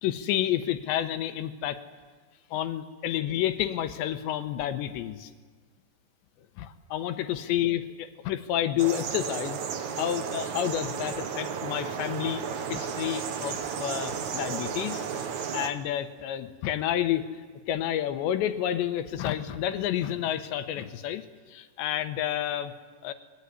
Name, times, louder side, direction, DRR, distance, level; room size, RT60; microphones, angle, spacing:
voice 1, 0.0-1.8 2.5-5.3 6.6-9.6 10.0-12.4 12.7-15.0 15.5-17.4 17.7-21.2 21.5-22.7 23.0-23.1, left 11 dB, 75° left, 9 dB, 3.2 m, -30 dB
sound 1, 8.8-15.7, right 7 dB, 60° right, 2.1 m, -33 dB
27.0 x 22.5 x 9.8 m, 1.4 s
omnidirectional pair, 5.3 m